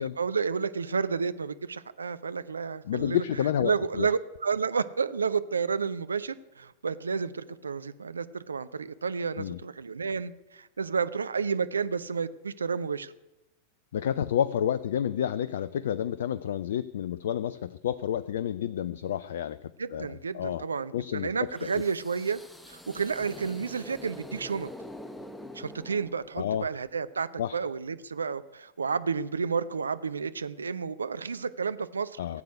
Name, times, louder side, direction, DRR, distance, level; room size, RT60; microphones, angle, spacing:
voice 1, 0.0-3.2 3.6-13.1 19.8-22.4 22.7-24.7 25.5-27.3 27.5-32.4, right 5 dB, 75° right, 13 dB, 0.7 m, -31 dB
voice 2, 2.9-4.1 9.4-9.6 13.9-20.1 20.3-20.6 20.9-21.7 26.4-26.7 27.4-27.6 32.2-32.4, left 10 dB, 60° left, 17 dB, 0.4 m, -30 dB
sound 1, 21.5-26.6, left 1 dB, 5° left, 1.1 m, -45 dB
15.5 x 8.3 x 9.5 m, 0.95 s
figure-of-eight pair, 90°, 0 cm